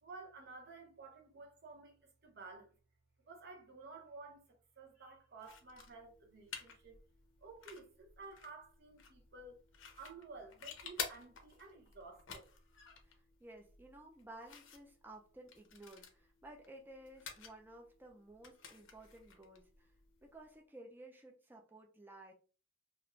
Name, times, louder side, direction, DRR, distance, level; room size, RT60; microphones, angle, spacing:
voice 1, 0.0-2.8 3.3-4.4 4.8-7.0 7.4-9.6 10.0-12.5, right 3 dB, 55° right, 0.8 m, -53 dB
sound 1, 5.4-20.5, left 6 dB, 65° left, 0.6 m, -52 dB
voice 2, 13.0-19.9 20.2-22.3, right 1 dB, 10° right, 0.4 m, -55 dB
2.5 x 2.2 x 3.0 m
head